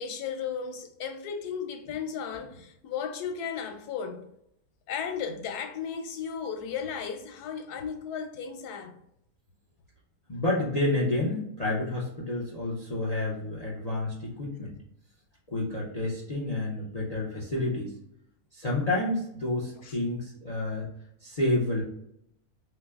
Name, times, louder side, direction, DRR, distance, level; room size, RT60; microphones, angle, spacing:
voice 1, 0.0-4.2 4.9-8.9 19.8-20.0 20.7-20.8, left 7 dB, 90° left, 1.2 m, -35 dB
voice 2, 10.3-14.7 15.5-17.9 18.5-20.9 21.2-21.8, left 2 dB, 40° left, 0.6 m, -29 dB
5.8 x 2.1 x 2.4 m
omnidirectional pair, 1.6 m